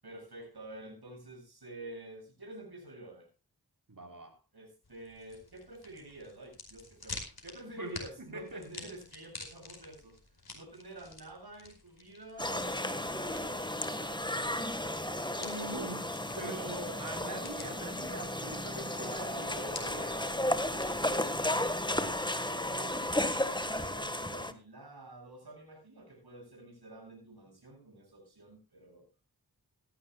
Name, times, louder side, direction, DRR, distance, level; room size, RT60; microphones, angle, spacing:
voice 1, 0.0-3.3 4.5-10.2 10.5-14.4 18.8-23.1 23.4-29.1, right 1 dB, 70° right, 7.7 m, -49 dB
voice 2, 3.9-4.3 7.8-8.7 15.4-16.1 16.4-20.1, right 2 dB, 55° right, 4.3 m, -43 dB
sound 1, 4.8-21.6, left 2 dB, 65° left, 4.9 m, -50 dB
sound 2, 12.4-24.5, left 1 dB, 10° left, 1.6 m, -34 dB
17.5 x 15.5 x 2.4 m
wide cardioid pair, 40°, 39 cm